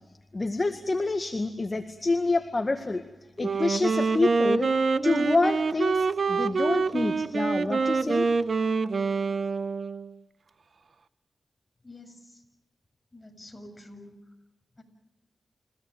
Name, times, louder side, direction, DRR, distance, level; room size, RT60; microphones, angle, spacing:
voice 1, 0.3-3.0 3.4-8.3, left 3 dB, 35° left, 6 dB, 1.9 m, -27 dB
Wind instrument woodwind instrument, 3.4-10.2, right 4 dB, 65° right, 1.0 m, -26 dB
voice 2, 11.8-12.5 13.1-14.1 14.8-14.9, left 1 dB, 20° left, 3 dB, 7.7 m, -48 dB
29.5 x 16.5 x 9.2 m, 1.1 s
cardioid pair, 50°, 0 cm